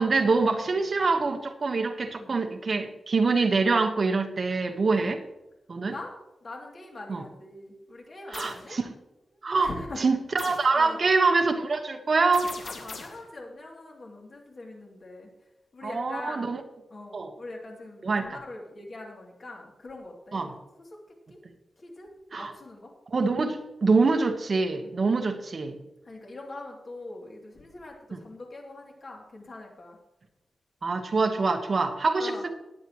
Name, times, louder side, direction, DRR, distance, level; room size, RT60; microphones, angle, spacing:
voice 1, 0.0-5.2 5.7-5.9 7.1-7.2 8.3-8.9 9.4-12.6 15.8-16.6 17.1-17.3 18.0-18.4 20.3-20.5 22.3-22.5 23.1-25.8 28.1-28.2 30.8-32.5, right 4 dB, 45° right, 5 dB, 1.3 m, -25 dB
voice 2, 6.4-8.8 9.6-10.1 10.7-11.0 12.6-15.3 15.7-16.5 16.9-20.5 20.8-20.9 21.3-21.4 21.8-22.9 24.8-25.1 26.0-30.0 32.2-32.4, left 2 dB, 45° left, -1 dB, 2.9 m, -42 dB
sound 1, 8.3-8.6 10.4-10.7 12.3-13.3, left 4 dB, 80° left, 2.2 m, -40 dB
20.0 x 8.5 x 3.1 m, 0.97 s
wide cardioid pair, 150°, 0 cm